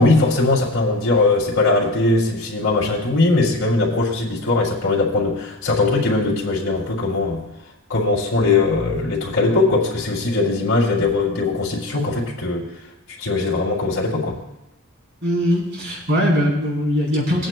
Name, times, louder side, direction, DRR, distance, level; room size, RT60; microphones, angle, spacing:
voice 1, 0.0-7.4 7.9-12.6 13.2-14.4, left 3 dB, 70° left, -4 dB, 2.7 m, -20 dB
voice 2, 15.2-17.5, equal, 50° right, -4 dB, 3.9 m, -20 dB
22.5 x 9.1 x 2.2 m, 0.92 s
head